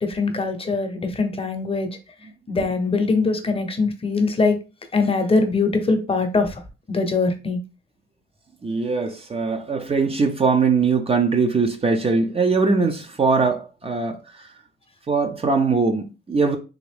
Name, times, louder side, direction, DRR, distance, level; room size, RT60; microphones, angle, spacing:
voice 1, 0.0-1.9 2.5-4.6 4.9-6.6 6.9-7.6, left 3 dB, 30° left, 0.8 m, -22 dB
voice 2, 8.6-14.2 15.1-16.6, right 4 dB, 30° right, 0.6 m, -21 dB
3.6 x 2.5 x 3.4 m
cardioid pair, 90°, 20 cm